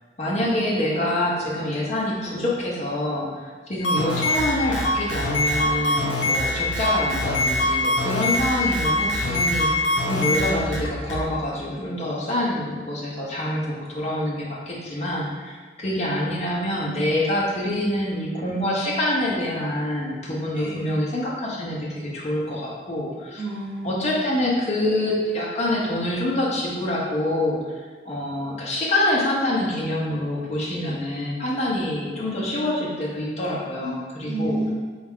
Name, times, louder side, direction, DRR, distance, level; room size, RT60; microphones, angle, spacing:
voice 1, 0.2-23.4 23.8-34.6, left 1 dB, 35° left, -4 dB, 0.6 m, -26 dB
sound 1, 3.8-11.2, left 1 dB, 90° left, 0.7 m, -23 dB
voice 2, 20.5-20.9 23.4-24.1 33.8-33.9 34.2-34.7, right 2 dB, 5° left, -10 dB, 0.8 m, -30 dB
4.2 x 2.3 x 3.5 m, 1.5 s
head